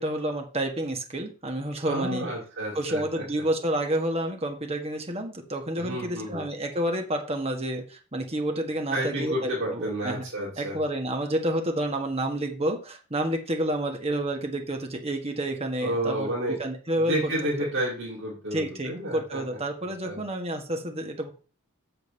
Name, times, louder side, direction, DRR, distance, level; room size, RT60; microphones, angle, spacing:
voice 1, 0.0-2.2 2.7-10.2 10.6-17.3 18.5-21.3, right 1 dB, 30° right, 3 dB, 1.7 m, -29 dB
voice 2, 1.8-3.2 5.8-6.5 8.9-10.8 15.8-16.6 17.0-19.4 19.8-20.2, right 1 dB, 50° right, -5 dB, 2.9 m, -30 dB
7.1 x 5.2 x 6.8 m, 0.37 s
head